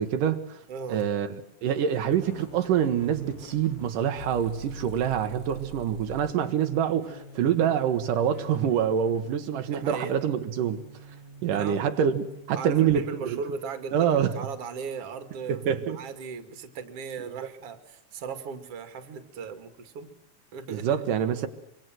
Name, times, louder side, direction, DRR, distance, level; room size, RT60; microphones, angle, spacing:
voice 1, 0.0-0.6 0.9-10.8 11.4-13.4 13.9-14.3 15.5-16.0 17.4-17.5 20.7-21.5, right 9 dB, 80° right, 2.9 m, -26 dB
voice 2, 0.7-1.1 9.6-10.3 11.5-11.9 12.5-20.1 20.5-21.0, right 5 dB, 50° right, 2.9 m, -37 dB
sound 1, 2.1-13.0, equal, 35° left, 3.4 m, -46 dB
25.5 x 25.0 x 7.7 m
omnidirectional pair, 3.7 m